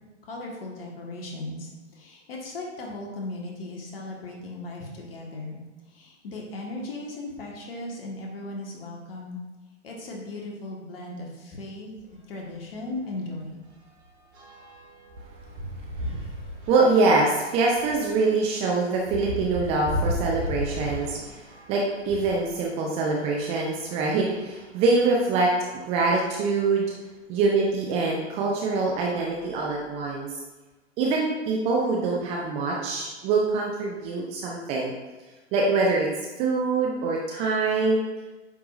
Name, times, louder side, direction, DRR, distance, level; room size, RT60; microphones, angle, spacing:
voice 1, 0.2-5.6 5.9-9.4 9.8-11.9 12.3-13.6, left 2 dB, 50° left, -1 dB, 1.6 m, -37 dB
sound 1, 12.0-12.2 12.5-12.6 13.0-22.4 23.2-24.5 25.2-25.3 25.5-25.6 27.3-27.5 28.1-28.3 28.7-30.0, equal, 65° right, 1.8 m, -36 dB
voice 2, 16.7-26.9 27.3-30.3 31.0-34.9 35.5-36.1 36.4-38.0, right 3 dB, 15° right, -2 dB, 0.5 m, -24 dB
8.8 x 4.7 x 2.5 m, 1.2 s
figure-of-eight pair, 115°, 36 cm